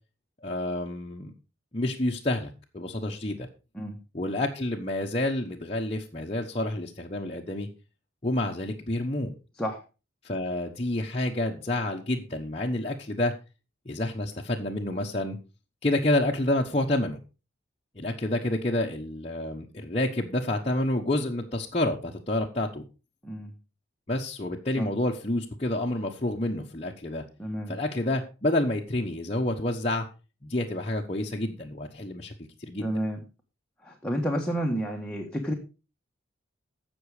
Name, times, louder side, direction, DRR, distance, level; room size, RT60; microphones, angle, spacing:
voice 1, 0.4-1.3 1.7-3.5 4.1-7.7 8.2-9.3 10.2-13.3 13.8-15.4 15.8-17.2 18.0-22.8 24.1-27.2 27.7-30.1 30.4-32.3 32.6-32.9, left 1 dB, 30° left, -1 dB, 1.0 m, -29 dB
voice 2, 27.4-27.8 32.8-33.2 33.8-35.5, equal, 5° left, 0 dB, 1.3 m, -30 dB
15.5 x 6.2 x 4.9 m, 0.32 s
head